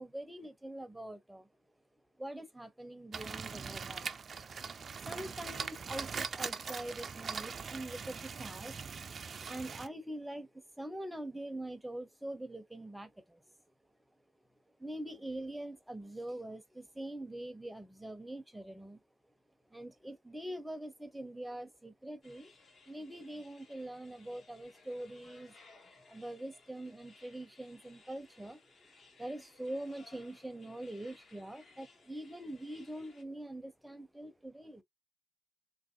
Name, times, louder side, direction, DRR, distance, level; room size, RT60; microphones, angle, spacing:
voice 1, 0.0-1.5 2.2-4.1 4.4-4.5 5.0-8.8 9.4-13.4 14.8-19.0 19.7-22.6 22.9-25.5 26.0-28.9 29.2-34.8, right 1 dB, 5° right, 0.7 m, -44 dB
sound 1, 3.1-9.9, right 5 dB, 45° right, 0.4 m, -41 dB
sound 2, 22.2-33.2, left 3 dB, 50° left, 1.0 m, -62 dB
3.0 x 2.6 x 2.7 m
cardioid pair, 90°, 0 cm